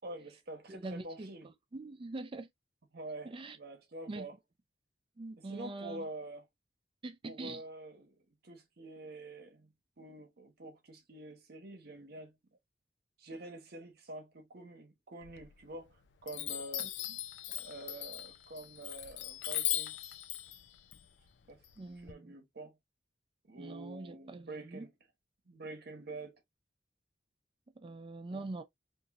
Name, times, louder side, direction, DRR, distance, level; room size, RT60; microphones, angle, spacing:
voice 1, 0.0-1.5 2.9-4.3 5.4-6.5 7.2-8.2 8.4-12.4 13.2-16.9 17.5-20.0 21.5-22.8 23.4-25.0 25.5-26.4 28.3-28.4, right 2 dB, 60° right, 0.9 m, -47 dB
voice 2, 0.7-2.5 3.2-3.6 4.1-4.3 5.2-6.1 7.0-7.6 16.8-16.9 21.8-22.3 23.6-24.9 27.8-28.6, right 2 dB, 30° right, 0.4 m, -44 dB
Chime, 15.2-15.9 16.3-22.1, left 12 dB, 70° left, 0.4 m, -39 dB
2.9 x 2.6 x 2.4 m
head